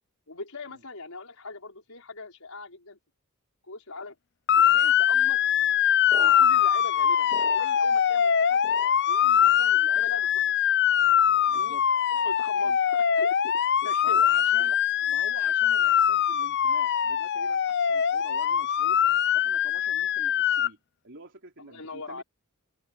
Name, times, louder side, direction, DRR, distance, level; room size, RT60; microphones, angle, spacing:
voice 1, 0.3-3.0 3.6-4.1 4.7-5.4 6.1-8.6 9.1-10.7 11.4-11.8 12.1-14.2 14.7-14.8 21.7-22.2, left 3 dB, 85° left, 4.8 m, -41 dB
Motor vehicle (road) / Siren, 4.5-20.7, left 9 dB, 55° left, 0.5 m, -23 dB
sound 1, 6.1-8.3 8.6-9.5 9.9-10.6 11.3-11.7 12.6-13.0 13.9-14.2, right 3 dB, 30° right, 2.8 m, -46 dB
voice 2, 11.5-11.9 12.6-12.8 14.0-14.8 15.1-19.0 19.3-20.8 21.0-22.2, right 3 dB, 60° right, 3.9 m, -46 dB
head